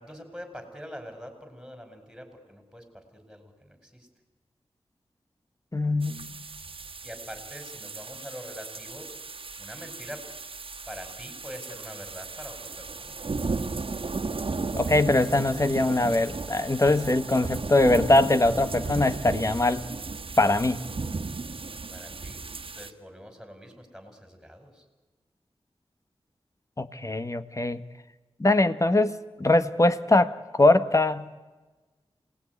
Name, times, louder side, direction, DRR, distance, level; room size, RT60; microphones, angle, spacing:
voice 1, 0.0-4.1 7.0-9.1 9.6-10.3 10.9-13.2 21.9-22.4 22.7-24.9, equal, ahead, 5 dB, 5.7 m, -44 dB
voice 2, 5.7-6.4 14.7-19.8 20.4-20.9 26.8-27.8 28.4-31.3, left 2 dB, 30° left, 12 dB, 1.4 m, -22 dB
sound 1, 6.0-22.9, right 4 dB, 65° right, 1.6 m, -35 dB
27.0 x 19.0 x 9.7 m, 1.2 s
wide cardioid pair, 65°, 10 cm